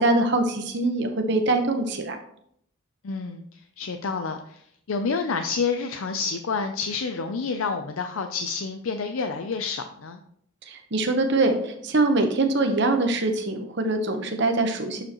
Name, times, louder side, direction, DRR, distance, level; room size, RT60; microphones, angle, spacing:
voice 1, 0.0-2.2 10.7-15.0, right 2 dB, 55° right, 5 dB, 1.0 m, -23 dB
voice 2, 3.0-3.4 3.8-4.6 4.9-10.2, left 5 dB, 80° left, 6 dB, 0.5 m, -28 dB
11.0 x 5.0 x 3.0 m, 0.70 s
head